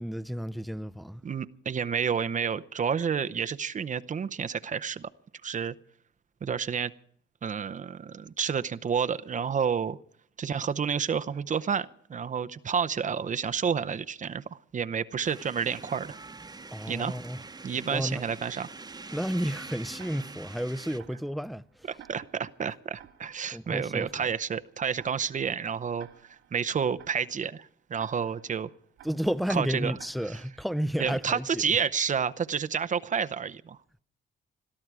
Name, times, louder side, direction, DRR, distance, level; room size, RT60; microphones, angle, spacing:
voice 1, 0.0-1.2 16.7-17.4 17.9-18.2 19.1-21.9 23.5-24.1 29.0-31.6, equal, ahead, 0.6 m, -32 dB
voice 2, 1.2-5.1 5.4-5.7 6.4-6.9 7.4-10.0 10.4-16.2 16.9-17.2 17.6-18.7 21.9-28.7 29.5-29.9 30.3-30.4 31.0-33.8, right 7 dB, 40° right, 0.7 m, -30 dB
sound 1, 15.2-21.0, right 3 dB, 20° right, 1.1 m, -45 dB
Tick-tock, 20.0-31.8, right 10 dB, 85° right, 2.6 m, -57 dB
21.5 x 13.5 x 4.8 m
cardioid pair, 90°, 20 cm